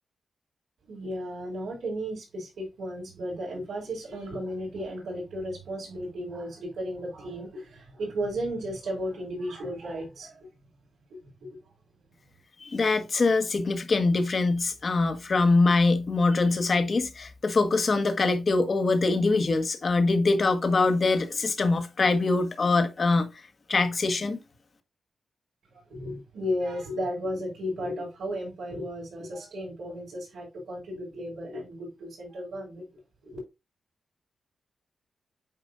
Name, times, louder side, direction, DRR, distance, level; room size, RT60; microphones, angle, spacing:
voice 1, 0.9-10.5 11.1-11.5 25.7-32.9 33.2-33.4, equal, 85° right, 4.5 m, -34 dB
voice 2, 12.6-23.3 23.7-24.4, left 3 dB, 45° left, 1.4 m, -23 dB
8.9 x 5.1 x 2.5 m
cardioid pair, 90°, 0 cm